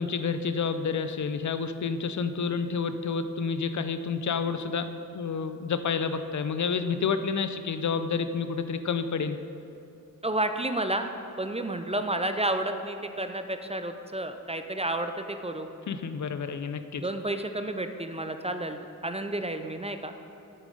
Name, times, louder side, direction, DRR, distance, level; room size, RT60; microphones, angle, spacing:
voice 1, 0.0-9.4 15.9-17.0, left 5 dB, 60° left, 10 dB, 0.5 m, -29 dB
voice 2, 10.2-11.1 11.4-15.7 17.0-20.1, right 1 dB, 20° right, 7 dB, 0.4 m, -31 dB
8.4 x 7.2 x 5.3 m, 2.9 s
wide cardioid pair, 95°, 33 cm